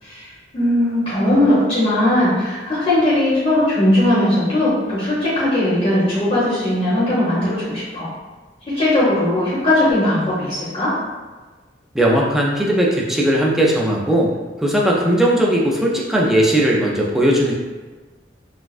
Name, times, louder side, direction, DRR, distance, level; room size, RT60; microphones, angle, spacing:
voice 1, 0.0-8.1 8.7-10.9, left 1 dB, 35° left, -9 dB, 1.0 m, -18 dB
voice 2, 11.9-14.3 14.6-17.5, right 1 dB, ahead, -3 dB, 0.4 m, -17 dB
4.1 x 2.2 x 2.4 m, 1.3 s
head